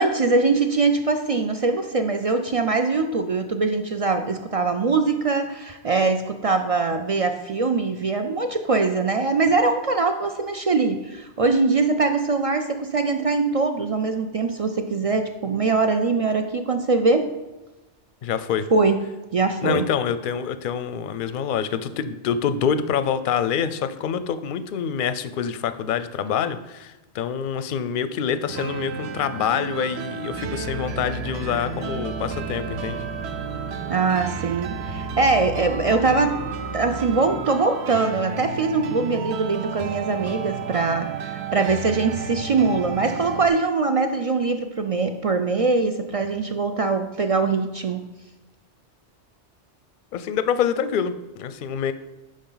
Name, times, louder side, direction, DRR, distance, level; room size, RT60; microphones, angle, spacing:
voice 1, 0.0-17.3 18.7-19.0 19.3-19.9 33.9-36.4 36.7-48.0, right 3 dB, 55° right, 6 dB, 0.4 m, -22 dB
voice 2, 18.2-18.7 19.6-33.0 50.1-51.9, left 7 dB, 60° left, 12 dB, 0.6 m, -26 dB
sound 1, 28.5-43.5, right 6 dB, 70° right, 0.8 m, -32 dB
sound 2, 30.3-37.5, right 1 dB, 20° right, 1.4 m, -37 dB
11.0 x 5.2 x 3.9 m, 1.1 s
omnidirectional pair, 1.2 m